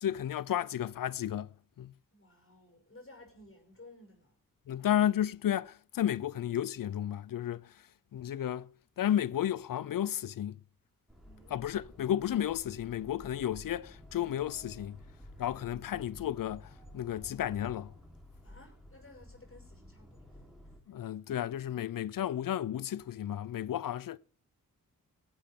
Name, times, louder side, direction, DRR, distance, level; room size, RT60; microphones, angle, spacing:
voice 1, 0.0-1.9 4.7-7.8 8.1-8.7 9.0-10.6 11.5-15.0 15.4-17.9 20.9-24.2, left 11 dB, 60° left, 0.6 m, -33 dB
voice 2, 2.1-4.4 11.2-11.7 18.4-20.4, left 2 dB, 35° left, 6.1 m, -56 dB
sound 1, 11.1-20.8, left 1 dB, ahead, 3.8 m, -53 dB
18.0 x 8.0 x 3.7 m
supercardioid pair, 45°, 37 cm